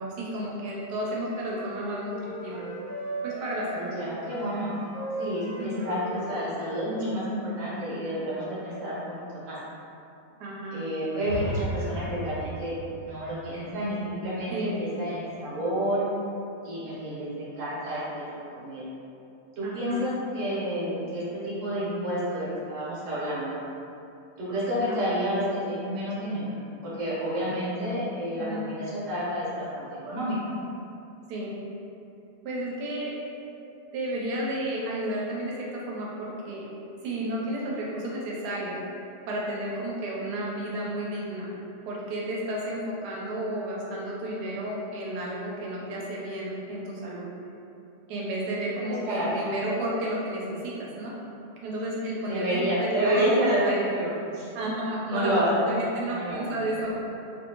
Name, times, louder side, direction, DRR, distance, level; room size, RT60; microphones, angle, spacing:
voice 1, 0.0-2.7 3.2-3.9 5.6-6.0 10.4-10.8 14.5-14.8 19.6-20.1 24.9-25.0 28.3-28.7 31.3-31.5 32.4-33.1 33.9-36.7 37.0-38.8 39.3-41.5 41.8-47.3 48.1-51.1 51.6-53.3 53.6-53.9 54.3-57.0, right 1 dB, 80° right, -4 dB, 1.2 m, -32 dB
Wind instrument woodwind instrument, 1.0-7.3, right 1 dB, 65° left, 0.7 m, -38 dB
voice 2, 3.9-4.8 5.2-9.0 9.3-9.6 10.7-16.0 16.6-18.0 18.3-18.9 19.6-23.6 24.4-30.4 48.9-49.3 52.3-54.5 55.1-55.5 56.1-56.5, right 1 dB, 55° right, -9 dB, 1.2 m, -29 dB
sound 1, 11.2-15.1, equal, 30° left, 1.0 m, -36 dB
2.9 x 2.6 x 2.8 m, 2.7 s
omnidirectional pair, 1.7 m